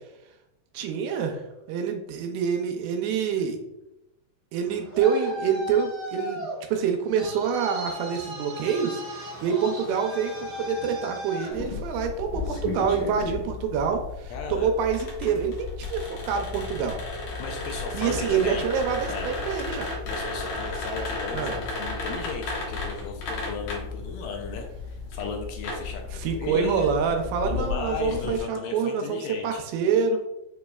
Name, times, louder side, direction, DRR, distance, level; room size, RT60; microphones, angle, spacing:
voice 1, 0.7-1.4 1.7-3.6 4.5-6.4 6.7-17.0 17.9-20.0 21.3-21.6 26.1-30.2, right 6 dB, 80° right, 4 dB, 2.4 m, -26 dB
Traffic noise roadway noise, 4.5-12.3, left 1 dB, 50° right, 1.2 m, -37 dB
sound 1, 11.5-28.4, left 3 dB, 65° left, 2.3 m, -34 dB
voice 2, 14.3-14.7 17.4-18.6 19.1-19.3 20.0-26.9 27.4-29.6, left 4 dB, 80° left, 3 dB, 2.3 m, -35 dB
6.8 x 3.0 x 2.3 m, 0.87 s
omnidirectional pair, 4.5 m